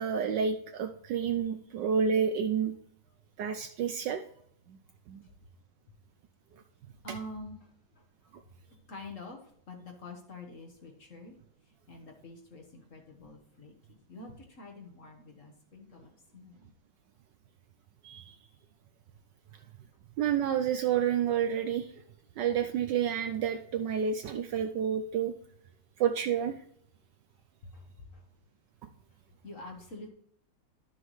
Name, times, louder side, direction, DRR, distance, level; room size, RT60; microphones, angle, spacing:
voice 1, 0.0-2.7 3.4-4.2 4.7-4.8 5.1-5.2 18.0-18.4 20.2-21.9 22.4-25.3 26.0-26.6, right 7 dB, 75° right, 8 dB, 1.1 m, -29 dB
voice 2, 7.0-8.1 8.9-9.4 9.7-11.4 11.7-16.8 27.6-28.3 29.4-30.1, left 1 dB, 45° left, 2 dB, 1.3 m, -47 dB
11.5 x 6.4 x 3.1 m, 0.66 s
omnidirectional pair, 2.2 m